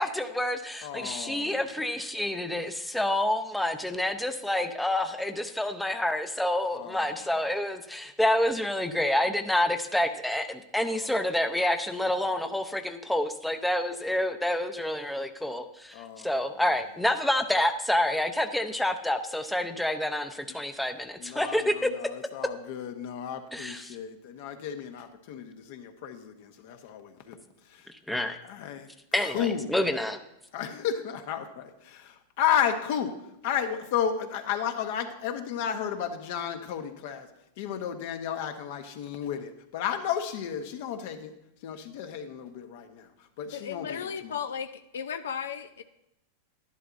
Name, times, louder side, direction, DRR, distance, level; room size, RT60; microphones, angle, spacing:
voice 1, 0.0-21.9 23.5-24.0 28.1-28.4 29.1-30.2, left 1 dB, 5° left, 6 dB, 0.6 m, -28 dB
voice 2, 0.8-1.6 6.7-7.3 10.8-11.1 15.9-16.3 20.5-20.6 21.2-27.4 27.7-27.9 28.4-28.9 29.2-29.7 30.5-33.1 33.4-37.3 37.6-41.3 41.6-43.1 43.4-44.3, left 8 dB, 65° left, 7 dB, 1.1 m, -33 dB
voice 3, 43.5-45.8, left 7 dB, 90° left, 9 dB, 0.5 m, -35 dB
11.0 x 11.0 x 2.6 m, 0.85 s
hypercardioid pair, 120°, 0 cm